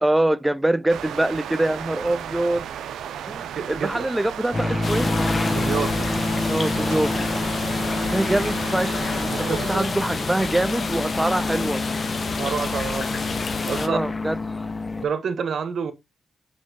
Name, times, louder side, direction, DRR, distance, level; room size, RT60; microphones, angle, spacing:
voice 1, 0.0-2.7 3.3-5.1 6.5-7.3 8.1-11.8 13.7-14.4, right 1 dB, 10° right, 0.3 m, -24 dB
sound 1, 0.9-9.8, right 9 dB, 85° right, 0.6 m, -35 dB
voice 2, 3.6-4.1 5.4-6.1 9.3-9.9 12.2-13.3 13.6-14.0 15.0-15.9, right 6 dB, 65° right, 1.1 m, -28 dB
sound 2, 4.5-15.1, left 2 dB, 30° left, 0.7 m, -27 dB
sound 3, 4.8-13.9, left 4 dB, 50° left, 1.2 m, -30 dB
6.1 x 5.5 x 2.8 m
supercardioid pair, 60°, 0 cm